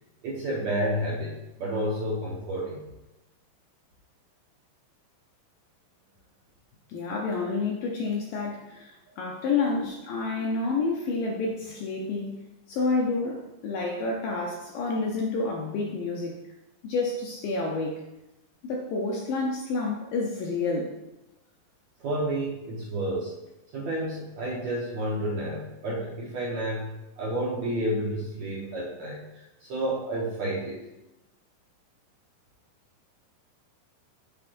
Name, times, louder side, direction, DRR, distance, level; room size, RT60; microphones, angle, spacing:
voice 1, 0.2-2.9 9.7-9.8 10.2-10.5 17.7-17.8 22.0-23.3 23.7-30.8, right 1 dB, 65° right, -6 dB, 1.7 m, -30 dB
voice 2, 6.9-12.3 12.7-16.4 16.8-18.0 18.6-20.9, left 3 dB, 80° left, -1 dB, 2.0 m, -29 dB
8.8 x 8.5 x 2.6 m, 0.96 s
omnidirectional pair, 5.1 m